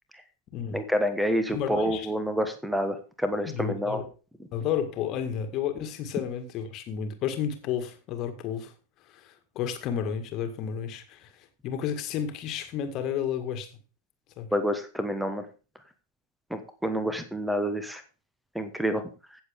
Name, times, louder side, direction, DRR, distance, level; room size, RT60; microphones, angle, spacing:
voice 1, 0.7-4.0 14.5-15.4 16.5-18.0 18.5-19.1, equal, ahead, 10 dB, 1.3 m, -28 dB
voice 2, 1.5-2.1 3.5-4.1 4.5-8.7 9.1-13.7 14.4-14.5, left 8 dB, 35° left, 7 dB, 1.9 m, -32 dB
16.5 x 7.1 x 3.6 m, 0.35 s
figure-of-eight pair, 90°, 0 cm